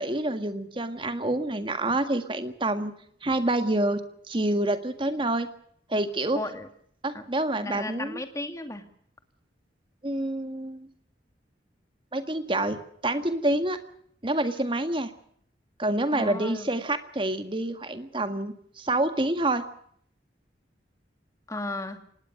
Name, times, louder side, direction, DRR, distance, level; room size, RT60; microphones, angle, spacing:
voice 1, 0.0-4.0 4.3-5.5 5.9-6.4 7.0-8.2 10.0-10.9 12.1-13.8 14.2-15.1 15.8-19.6, right 1 dB, 30° right, 9 dB, 1.8 m, -27 dB
voice 2, 6.3-6.7 7.1-7.2 7.6-8.9 16.1-16.7 21.5-22.0, left 2 dB, 20° left, 7 dB, 2.0 m, -35 dB
25.0 x 19.0 x 6.6 m, 0.65 s
head